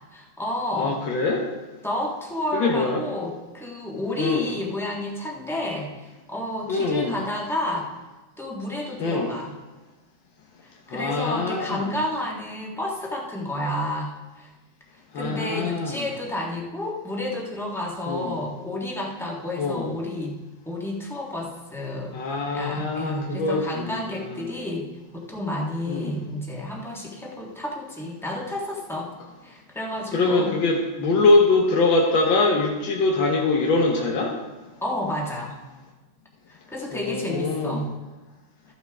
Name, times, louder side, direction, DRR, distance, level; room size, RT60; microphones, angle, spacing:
voice 1, 0.1-1.0 1.8-7.9 8.4-9.5 10.6-14.5 15.1-20.3 20.6-22.1 22.5-24.9 25.1-29.1 29.4-30.5 34.8-35.6 36.5-37.9, left 1 dB, ahead, -2 dB, 1.3 m, -31 dB
voice 2, 0.7-1.5 2.5-3.0 4.2-4.5 6.7-7.2 9.0-9.4 10.9-11.8 15.1-16.1 18.1-18.4 19.6-19.9 22.1-24.5 25.9-26.2 30.1-34.3 36.9-37.9, left 3 dB, 90° left, 0 dB, 1.8 m, -23 dB
13.5 x 8.3 x 3.5 m, 1.2 s
omnidirectional pair, 2.0 m